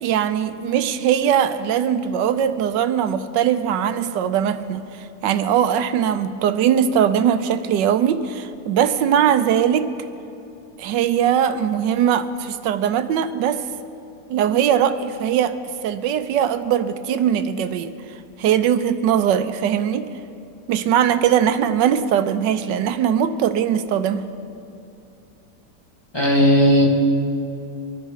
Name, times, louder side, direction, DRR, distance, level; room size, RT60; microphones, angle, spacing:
voice 1, 0.0-4.8 5.2-9.9 10.8-13.6 14.3-15.6 15.8-17.9 18.4-20.1 20.7-24.3, right 9 dB, 90° right, 12 dB, 1.3 m, -20 dB
voice 2, 26.1-26.9, equal, 15° left, -2 dB, 2.2 m, -15 dB
24.5 x 10.0 x 4.7 m, 2.7 s
omnidirectional pair, 1.9 m